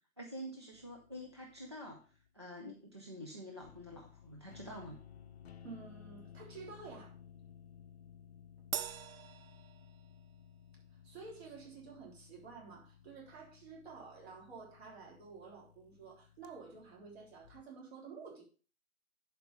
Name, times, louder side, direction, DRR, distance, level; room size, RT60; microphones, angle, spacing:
voice 1, 0.2-2.0 2.3-5.0, equal, 20° right, -2 dB, 0.5 m, -47 dB
sound 1, 0.7-2.3 3.6-17.6, left 8 dB, 45° left, 0.7 m, -58 dB
voice 2, 5.6-7.2 11.0-18.4, right 4 dB, 45° right, -1 dB, 3.7 m, -51 dB
Crash cymbal, 8.7-10.4, right 9 dB, 75° right, 0.7 m, -42 dB
11.0 x 4.7 x 5.1 m, 0.38 s
hypercardioid pair, 170°, 43 cm